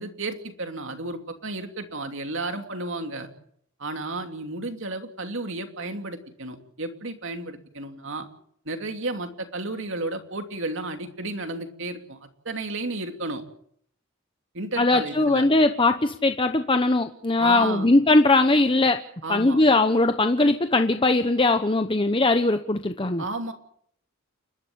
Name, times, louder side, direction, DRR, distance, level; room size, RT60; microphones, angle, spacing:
voice 1, 0.0-3.3 3.8-8.2 8.6-12.2 12.4-13.4 14.5-15.4 17.4-17.9 19.2-19.6 23.2-23.5, right 2 dB, 60° right, 6 dB, 2.9 m, -32 dB
voice 2, 14.8-19.0 19.3-23.2, left 2 dB, 25° left, 8 dB, 1.0 m, -20 dB
30.0 x 12.5 x 8.7 m, 0.66 s
head